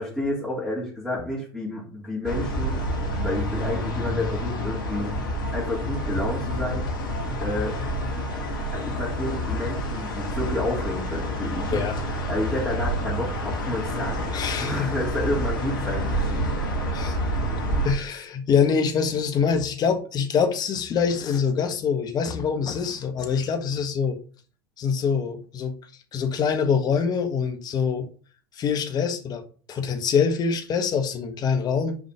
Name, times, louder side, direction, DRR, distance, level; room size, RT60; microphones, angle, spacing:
voice 1, 0.0-2.8 3.2-5.1 5.5-6.9 7.4-7.8 8.7-11.8 12.3-14.2 14.6-16.6, left 1 dB, ahead, 3.3 m, -30 dB
sound 1, 2.2-17.9, equal, 70° left, 1.8 m, -28 dB
voice 2, 14.3-14.9 16.9-17.2 17.8-24.2 24.8-25.8 26.1-28.1 28.5-29.4 29.7-32.0, left 6 dB, 35° left, 1.5 m, -24 dB
6.2 x 4.8 x 5.0 m
figure-of-eight pair, 75°, 12 cm